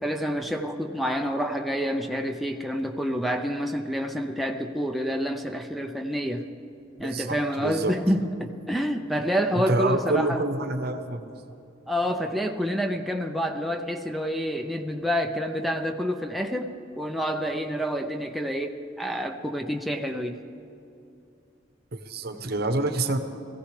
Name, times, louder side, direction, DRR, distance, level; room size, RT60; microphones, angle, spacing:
voice 1, 0.0-6.5 7.0-10.4 11.9-20.4, equal, ahead, 2 dB, 0.5 m, -28 dB
voice 2, 7.0-8.0 9.5-11.3 21.9-23.2, right 2 dB, 55° right, 8 dB, 0.9 m, -27 dB
21.5 x 15.5 x 3.3 m, 2.6 s
head